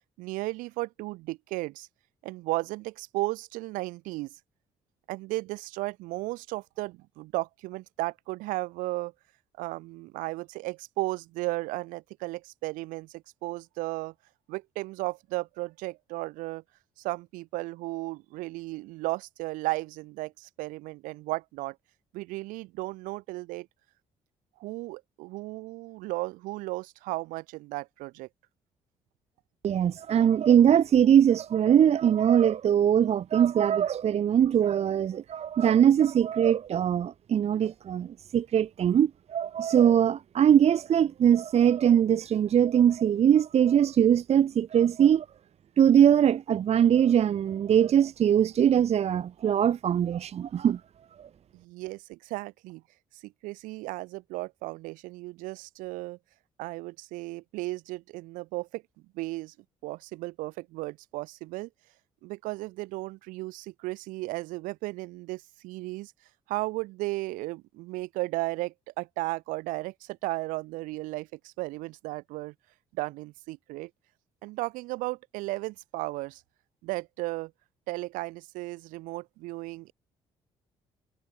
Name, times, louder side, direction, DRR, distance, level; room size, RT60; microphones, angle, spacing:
voice 1, 0.2-1.9 2.2-4.4 5.1-9.1 9.6-14.1 14.5-16.6 17.0-21.8 22.1-23.7 24.6-28.3 51.5-52.8 53.2-56.2 56.6-58.8 59.1-59.5 59.8-61.7 62.2-66.1 66.5-72.5 72.9-73.9 74.4-76.4 76.8-77.5 77.9-79.9, right 21 dB, 80° right, 2.7 m, -35 dB
voice 2, 29.6-45.3 45.8-50.8 51.2-51.3, right 9 dB, 50° right, 0.7 m, -22 dB
hypercardioid pair, 55°, 14 cm